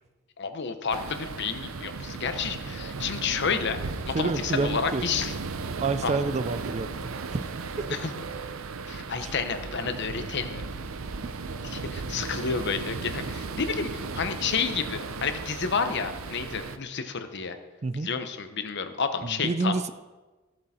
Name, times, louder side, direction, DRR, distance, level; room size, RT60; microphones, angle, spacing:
voice 1, 0.4-3.8 4.1-5.3 6.0-6.2 7.9-8.1 8.9-10.6 11.6-17.6 17.9-19.7, left 5 dB, 55° left, 8 dB, 0.9 m, -30 dB
sound 1, 0.9-16.8, right 4 dB, 80° right, 0.7 m, -36 dB
voice 2, 4.1-5.0 5.8-6.9 7.3-7.5 7.8-7.9 9.2-9.3 17.8-18.1 19.2-19.9, right 3 dB, 30° right, 13 dB, 0.4 m, -28 dB
14.5 x 7.6 x 4.3 m, 1.2 s
head